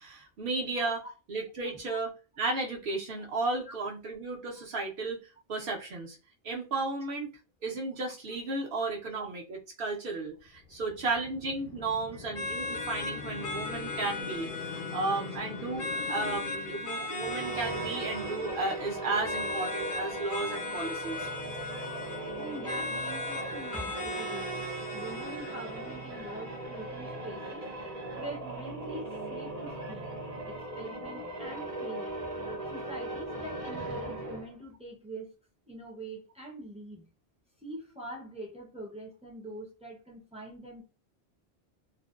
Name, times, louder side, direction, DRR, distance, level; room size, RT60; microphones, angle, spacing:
voice 1, 0.0-5.2 5.5-6.2 6.4-7.3 7.6-21.3, right 3 dB, 65° right, 0.9 m, -34 dB
voice 2, 0.8-1.1 1.9-2.0 3.2-3.3 3.7-3.8 12.1-12.3 15.3-15.4 22.3-24.7 24.9-27.7 28.2-30.1 30.5-32.1 32.4-35.3 35.7-37.1 37.6-40.8, right 1 dB, 10° right, 0.4 m, -44 dB
sound 1, 10.5-17.5, left 6 dB, 70° left, 0.8 m, -43 dB
sound 2, 12.3-27.3, left 1 dB, 50° left, 0.4 m, -38 dB
sound 3, 17.1-34.6, right 1 dB, 40° right, 0.7 m, -39 dB
2.5 x 2.1 x 2.3 m
omnidirectional pair, 1.1 m